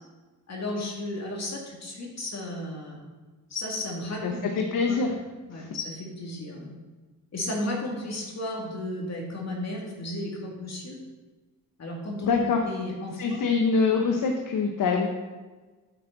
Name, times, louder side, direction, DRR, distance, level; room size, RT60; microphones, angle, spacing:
voice 1, 0.5-3.0 3.5-4.4 4.9-5.0 5.5-6.7 7.3-11.0 11.8-13.4, left 1 dB, 45° left, -2 dB, 2.5 m, -34 dB
voice 2, 4.2-5.1 5.5-5.7 12.3-12.6 13.2-15.1, left 4 dB, 60° left, 3 dB, 1.1 m, -24 dB
9.2 x 7.5 x 4.0 m, 1.3 s
cardioid pair, 70°, 36 cm